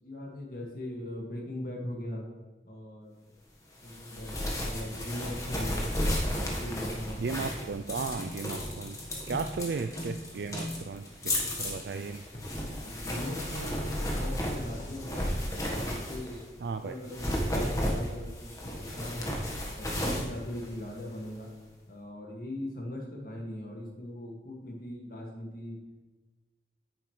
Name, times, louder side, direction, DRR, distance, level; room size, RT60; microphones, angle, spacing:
voice 1, 0.0-2.3 2.6-3.1 3.8-5.8 6.4-7.5 12.7-15.2 15.6-16.4 16.8-19.3 19.7-21.5 21.9-25.8, left 1 dB, 50° left, 0 dB, 2.0 m, -40 dB
sound 1, 3.8-16.5 17.0-21.3, left 1 dB, 20° left, 1.3 m, -34 dB
voice 2, 7.2-9.0 9.3-12.2 16.6-16.9, right 4 dB, 70° right, 8 dB, 0.4 m, -35 dB
sound 2, 11.3-11.5 12.3-12.6 13.7-14.0 14.8-15.0 16.2-16.5 17.1-17.4 17.9-18.2 18.6-19.0, left 1 dB, 35° left, 1.4 m, -47 dB
10.0 x 9.2 x 3.2 m, 1.2 s
head